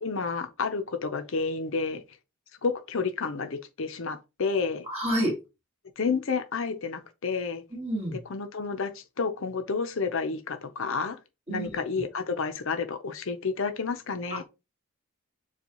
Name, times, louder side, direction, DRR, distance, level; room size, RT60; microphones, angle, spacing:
voice 1, 0.0-2.0 2.6-4.8 6.0-7.6 8.1-11.2 11.5-14.4, left 4 dB, 60° left, 0.6 m, -30 dB
voice 2, 4.9-5.3 7.7-8.2 11.5-11.8 14.3-14.4, right 1 dB, 25° right, 1.8 m, -29 dB
7.0 x 2.3 x 2.9 m
head